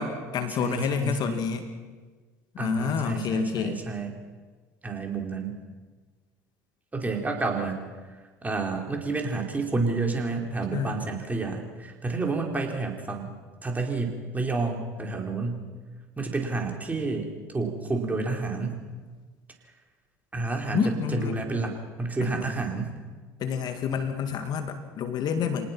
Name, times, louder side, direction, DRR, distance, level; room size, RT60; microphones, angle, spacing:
voice 1, 0.0-1.6 2.5-3.8 10.7-11.0 20.7-21.4 22.2-22.5 23.4-25.7, left 6 dB, 55° left, 7 dB, 2.2 m, -28 dB
voice 2, 0.6-1.4 2.6-4.2 4.8-5.6 6.9-7.8 8.1-15.7 16.2-18.8 20.3-22.9, right 3 dB, 20° right, 2 dB, 4.7 m, -30 dB
26.0 x 19.0 x 6.1 m, 1.4 s
hypercardioid pair, 70°, 9 cm